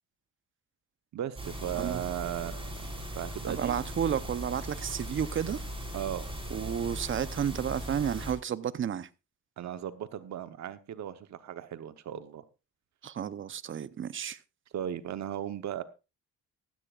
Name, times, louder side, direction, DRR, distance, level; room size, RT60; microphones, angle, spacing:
voice 1, 1.1-2.7 3.2-3.8 5.9-6.3 9.6-12.4 14.7-15.8, right 10 dB, 65° right, 1.0 m, -36 dB
sound 1, 1.4-8.3, equal, 15° right, 4.9 m, -39 dB
voice 2, 3.5-5.6 6.5-9.1 13.0-14.4, right 8 dB, 40° right, 0.8 m, -32 dB
16.0 x 13.5 x 2.4 m
cardioid pair, 90°, 30 cm